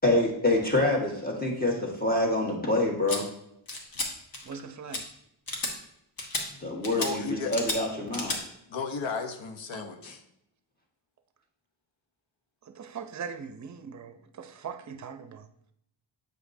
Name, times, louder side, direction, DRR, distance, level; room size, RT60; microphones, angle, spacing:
voice 1, 0.0-3.2 6.6-8.3, left 2 dB, 20° left, 1.7 m, -26 dB
sound 1, 3.1-3.2 3.7-4.1 4.3-4.6 4.9-5.0 5.5-5.7 6.2-6.4 6.8-7.1 7.5-7.8 8.1-8.4, left 2 dB, 45° left, 1.4 m, -32 dB
voice 2, 4.4-5.1 9.7-9.8 12.7-15.5, right 6 dB, 40° right, 0.6 m, -40 dB
voice 3, 6.5-7.5 8.7-10.2, left 4 dB, 75° left, 1.0 m, -35 dB
8.0 x 5.0 x 2.7 m
cardioid pair, 90°, 47 cm